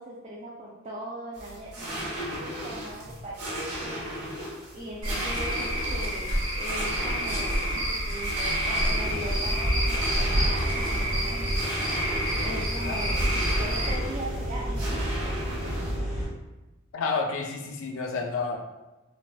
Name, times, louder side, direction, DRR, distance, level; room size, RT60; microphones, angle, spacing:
voice 1, 0.0-4.2 4.7-11.9 12.4-15.1, right 1 dB, 30° right, -6 dB, 0.4 m, -39 dB
sound 1, 1.3-16.0, equal, 90° right, 1.0 m, -36 dB
Cricket / Frog, 5.0-13.9, equal, 70° right, 1.3 m, -28 dB
sound 2, 8.9-16.3, equal, 5° right, 0.7 m, -32 dB
voice 2, 16.9-18.6, left 4 dB, 65° left, 2 dB, 0.4 m, -30 dB
4.0 x 2.1 x 2.3 m, 1.1 s
head